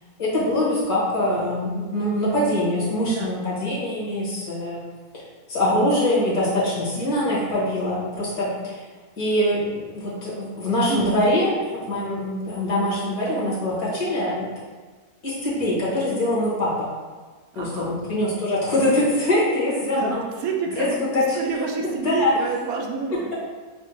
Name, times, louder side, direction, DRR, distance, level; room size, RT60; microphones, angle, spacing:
voice 1, 0.2-4.8 5.1-5.2 5.5-8.8 9.2-14.5 15.2-16.9 17.6-20.2 20.8-20.9 21.1-21.4 21.8-22.3 23.1-23.3, left 1 dB, 70° left, -7 dB, 1.9 m, -23 dB
voice 2, 10.9-11.3 17.5-17.9 19.9-23.3, right 4 dB, 75° right, 1 dB, 1.0 m, -28 dB
4.2 x 2.3 x 4.4 m, 1.4 s
omnidirectional pair, 1.6 m